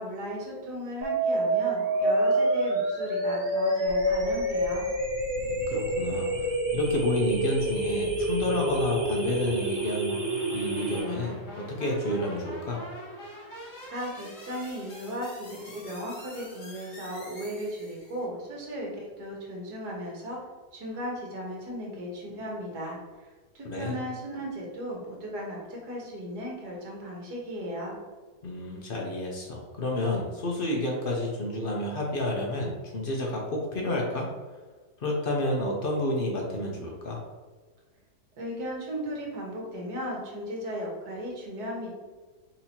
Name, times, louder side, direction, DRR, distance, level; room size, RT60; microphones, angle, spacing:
voice 1, 0.0-4.9 13.9-20.4 20.7-23.0 23.5-28.0 38.4-41.9, equal, 75° right, -2 dB, 1.8 m, -36 dB
sound 1, 1.0-11.0, right 1 dB, 40° right, 0.9 m, -27 dB
sound 2, 3.9-18.2, equal, 70° left, 1.7 m, -44 dB
voice 2, 5.3-6.4 6.7-10.2 10.5-12.8 23.6-24.0 28.4-34.3 35.0-37.2, left 1 dB, 50° left, -1 dB, 0.6 m, -30 dB
4.2 x 2.8 x 4.3 m, 1.4 s
omnidirectional pair, 1.7 m